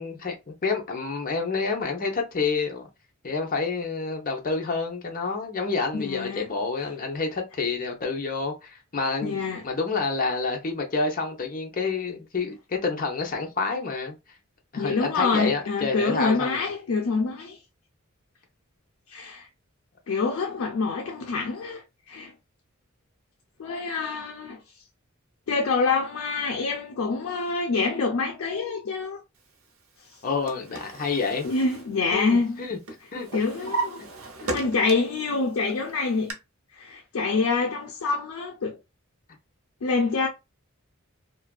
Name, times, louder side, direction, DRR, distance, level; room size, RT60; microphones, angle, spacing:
voice 1, 0.0-2.8 3.2-9.4 9.6-14.1 14.7-16.7 30.2-31.5 32.1-32.8 33.1-33.3 33.6-33.7, left 4 dB, 40° left, 0.7 m, -28 dB
voice 2, 5.9-6.5 9.2-9.6 14.8-17.6 19.1-19.5 20.1-22.3 23.6-24.6 25.5-29.2 31.4-32.6 33.3-34.1 34.4-36.3 36.8-38.8 39.8-40.3, left 4 dB, 85° left, 0.5 m, -26 dB
Drawer open or close, 30.1-32.6 32.9-35.2 35.6-36.3, right 2 dB, 75° right, 0.6 m, -35 dB
2.4 x 2.2 x 2.3 m
head